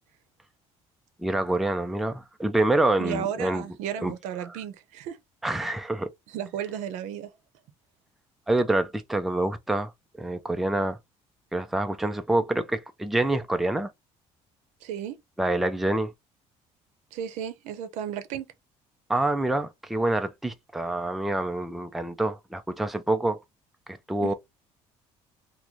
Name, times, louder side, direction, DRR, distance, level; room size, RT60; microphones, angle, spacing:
voice 1, 1.2-3.6 4.0-4.1 4.4-4.6 5.4-6.1 8.5-9.9 10.2-11.0 11.5-13.9 15.4-16.1 19.1-23.4 23.9-24.3, right 2 dB, ahead, 0.3 m, -26 dB
voice 2, 3.0-5.2 6.3-7.3 14.8-15.2 17.1-18.5 24.2-24.3, right 9 dB, 85° right, 0.7 m, -34 dB
3.0 x 2.1 x 3.7 m
cardioid pair, 150°, 12 cm